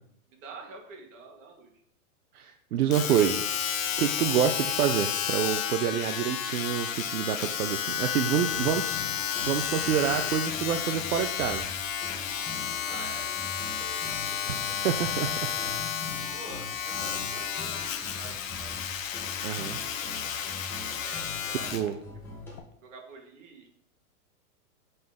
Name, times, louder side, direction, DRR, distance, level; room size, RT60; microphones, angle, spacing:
voice 1, 0.3-1.7 12.9-14.5 15.1-15.8 16.3-18.8 21.0-22.0 22.3-23.7, right 4 dB, 55° right, 1 dB, 1.9 m, -47 dB
voice 2, 2.3-3.4 4.0-11.7 14.5-15.3 19.4-19.8 21.7-22.0, right 9 dB, 80° right, 6 dB, 0.7 m, -27 dB
Domestic sounds home sounds, 2.9-21.9 22.6-22.7, left 9 dB, 60° left, 0.9 m, -32 dB
sound 1, 8.5-22.6, left 2 dB, 5° left, 1.1 m, -43 dB
7.7 x 4.0 x 3.6 m, 0.69 s
hypercardioid pair, 160°, 44 cm